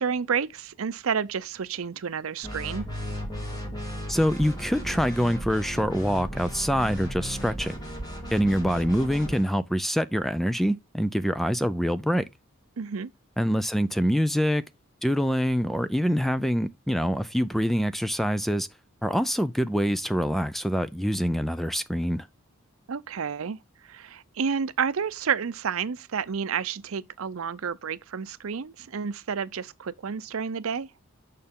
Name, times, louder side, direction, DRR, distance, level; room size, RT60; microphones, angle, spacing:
voice 1, 0.0-2.9 12.8-13.1 22.9-23.6 23.9-30.9, right 6 dB, 85° right, 0.6 m, -30 dB
sound 1, 2.4-9.5, equal, 20° left, 2.6 m, -35 dB
voice 2, 4.1-7.7 8.3-12.2 13.4-14.6 15.0-18.7 19.0-22.3, equal, ahead, 0.4 m, -25 dB
6.8 x 6.6 x 3.6 m
head